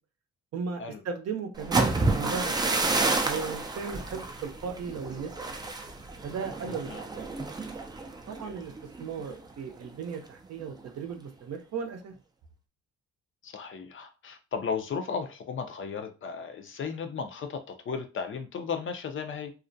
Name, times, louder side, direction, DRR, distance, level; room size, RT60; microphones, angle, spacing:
voice 1, 0.5-2.8 3.2-5.7 6.2-7.3 8.3-8.7 9.0-12.1, right 5 dB, 60° right, 0.6 m, -36 dB
sound 1, 1.6-9.4 9.8-10.1 10.5-10.9, right 3 dB, 15° right, 0.3 m, -30 dB
voice 2, 6.7-7.0 13.4-19.5, left 6 dB, 45° left, 0.5 m, -35 dB
2.4 x 2.1 x 2.6 m
cardioid pair, 90°, 30 cm